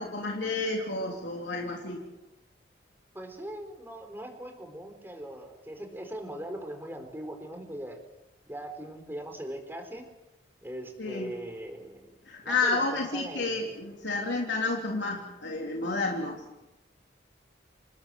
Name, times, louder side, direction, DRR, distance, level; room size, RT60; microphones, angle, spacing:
voice 1, 0.0-2.0 11.0-11.3 12.3-16.4, left 3 dB, 85° left, 0 dB, 3.4 m, -30 dB
voice 2, 3.1-8.0 8.5-10.0 10.6-12.1 12.4-13.6, right 1 dB, 10° right, 4 dB, 4.2 m, -40 dB
28.5 x 19.5 x 7.8 m, 0.95 s
head